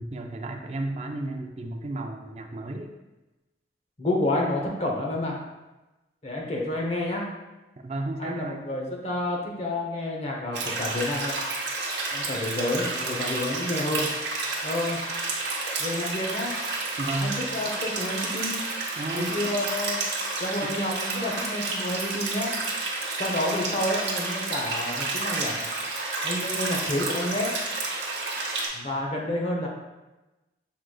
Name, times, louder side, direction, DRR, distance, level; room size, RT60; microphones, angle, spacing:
voice 1, 0.0-2.9 7.8-8.7 17.0-17.4 19.0-19.5 20.6-20.7, right 2 dB, 35° right, 4 dB, 0.4 m, -33 dB
voice 2, 4.0-5.4 6.2-7.2 8.2-11.4 12.1-14.1 14.6-15.0 15.8-16.6 17.2-18.6 19.1-20.0 20.4-22.5 23.2-25.6 26.2-27.5 28.7-29.7, left 1 dB, 35° left, -1 dB, 0.7 m, -29 dB
sound 1, 10.5-28.7, right 3 dB, 65° right, 1.0 m, -30 dB
6.2 x 3.7 x 2.3 m, 1.1 s
head